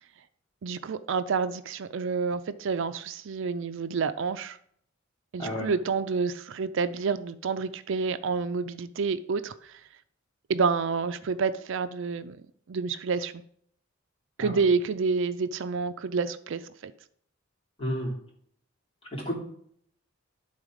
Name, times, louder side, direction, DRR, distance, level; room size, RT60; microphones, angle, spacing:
voice 1, 0.6-4.6 5.3-9.7 10.5-12.4 12.7-13.3 14.4-16.9, right 5 dB, 65° right, 0.4 m, -28 dB
voice 2, 5.4-5.7 14.4-14.6 17.8-18.1 19.1-19.3, equal, 30° left, 3.0 m, -31 dB
11.5 x 4.0 x 4.9 m
head